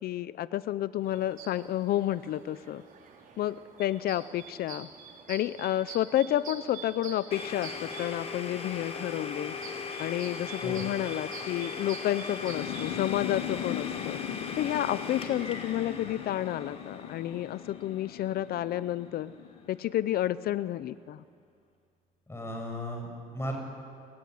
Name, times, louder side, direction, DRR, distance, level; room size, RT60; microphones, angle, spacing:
voice 1, 0.0-2.8 3.4-4.9 5.3-9.5 10.0-14.2 14.6-19.3 19.7-21.2, left 12 dB, 65° left, 16 dB, 0.7 m, -30 dB
sound 1, 1.0-14.7, right 6 dB, 50° right, 4.7 m, -48 dB
Domestic sounds home sounds, 7.3-19.0, left 5 dB, 35° left, 4.4 m, -39 dB
sound 2, 12.3-19.8, left 12 dB, 90° left, 1.1 m, -39 dB
voice 2, 22.3-23.5, equal, 15° left, 2 dB, 6.9 m, -36 dB
29.5 x 21.5 x 9.6 m, 2.2 s
cardioid pair, 110°, 17 cm